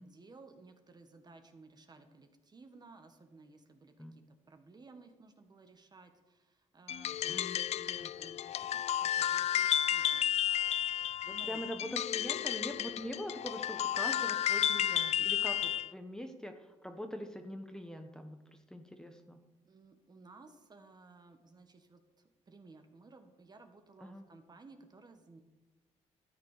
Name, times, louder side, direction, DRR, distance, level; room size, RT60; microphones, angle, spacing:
voice 1, 0.0-7.4 7.7-10.3 10.7-10.9 11.2-11.6 19.6-22.0 22.5-25.4, right 3 dB, 35° right, 6 dB, 1.7 m, -57 dB
sound 1, 6.9-15.9, left 10 dB, 60° left, 0.4 m, -32 dB
voice 2, 11.5-16.5 16.8-19.4 24.0-24.2, equal, 5° left, 6 dB, 1.3 m, -43 dB
13.5 x 8.5 x 6.8 m, 1.1 s
cardioid pair, 80°, 13 cm